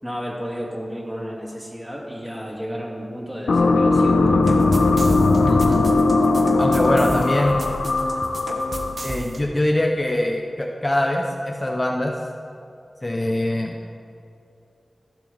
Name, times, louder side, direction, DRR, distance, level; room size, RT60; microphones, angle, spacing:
voice 1, 0.0-4.4, equal, 15° right, -3 dB, 2.4 m, -32 dB
sound 1, 3.5-9.1, left 3 dB, 85° left, 0.5 m, -19 dB
sound 2, 4.4-9.4, right 2 dB, 70° right, 0.7 m, -34 dB
voice 2, 5.5-5.8 6.6-7.7 9.0-12.1 13.0-13.8, left 1 dB, 30° left, 1 dB, 0.8 m, -23 dB
14.5 x 6.0 x 3.5 m, 2.6 s
cardioid pair, 40°, 0 cm